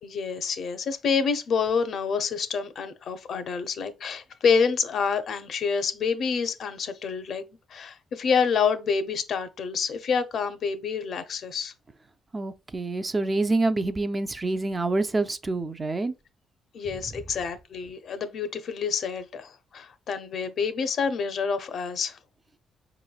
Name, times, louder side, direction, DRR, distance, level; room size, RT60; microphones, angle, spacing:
voice 1, 0.0-7.5 7.7-11.7 16.7-22.2, left 6 dB, 60° left, 0.6 m, -27 dB
voice 2, 12.3-16.1, right 2 dB, 25° right, 0.4 m, -27 dB
4.8 x 3.0 x 2.3 m
cardioid pair, 90°, 0 cm